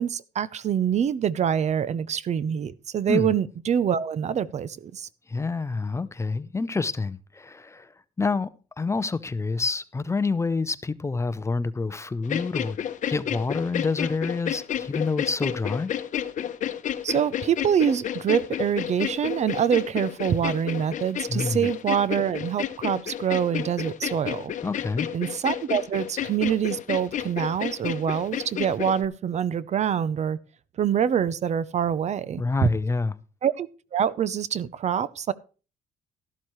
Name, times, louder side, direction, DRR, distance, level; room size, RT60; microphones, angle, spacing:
voice 1, 0.0-5.1 17.0-24.5 25.1-30.4 30.8-32.7 33.4-35.3, right 8 dB, 45° right, 0.6 m, -25 dB
voice 2, 5.3-7.9 8.2-8.5 8.8-12.8 13.1-15.9 21.3-21.7 24.6-25.1 32.4-33.1, left 4 dB, 20° left, 0.6 m, -27 dB
sound 1, 12.2-29.1, left 10 dB, 50° left, 0.9 m, -31 dB
13.0 x 12.0 x 3.1 m
cardioid pair, 125°, 16 cm